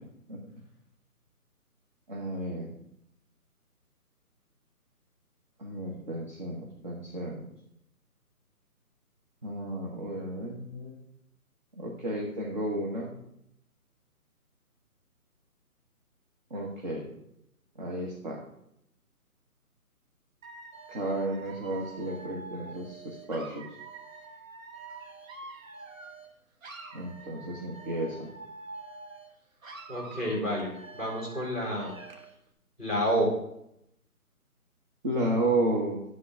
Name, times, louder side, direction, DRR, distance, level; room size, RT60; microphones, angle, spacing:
voice 1, 2.1-2.7 5.6-7.4 9.4-11.0 11.7-13.1 16.5-17.1 17.8-18.4 20.9-23.7 26.9-28.3 35.0-36.0, right 1 dB, 30° right, -2 dB, 1.0 m, -32 dB
Dog / Alarm, 20.4-26.3 26.6-29.3 29.6-32.3, right 3 dB, 60° right, 1.3 m, -46 dB
voice 2, 29.9-31.9 32.8-33.3, equal, 10° right, -4 dB, 3.2 m, -29 dB
10.0 x 3.8 x 6.1 m, 0.79 s
figure-of-eight pair, 160°, 45 cm